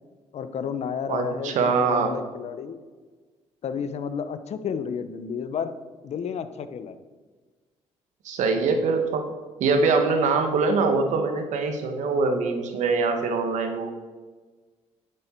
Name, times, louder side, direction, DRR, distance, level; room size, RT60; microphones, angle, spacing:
voice 1, 0.3-2.8 3.6-5.7 6.0-7.0, left 7 dB, 60° left, 11 dB, 0.9 m, -31 dB
voice 2, 1.1-2.1 8.2-9.3 9.6-13.9, right 4 dB, 80° right, 5 dB, 1.6 m, -23 dB
10.5 x 8.0 x 4.6 m, 1.3 s
cardioid pair, 85°, 12 cm